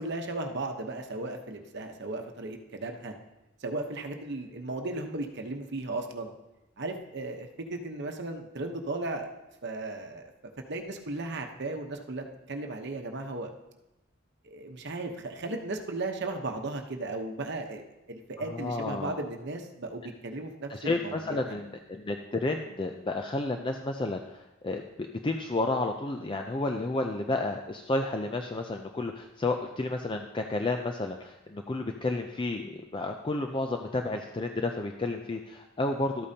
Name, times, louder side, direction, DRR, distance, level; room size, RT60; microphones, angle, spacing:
voice 1, 0.0-3.1 3.6-6.3 6.8-9.3 9.6-10.3 10.7-13.5 14.4-17.8 18.1-21.6, right 2 dB, 55° right, 4 dB, 0.9 m, -36 dB
voice 2, 18.4-19.2 20.7-36.3, left 2 dB, 25° left, 4 dB, 0.4 m, -31 dB
12.5 x 8.5 x 2.8 m, 0.96 s
head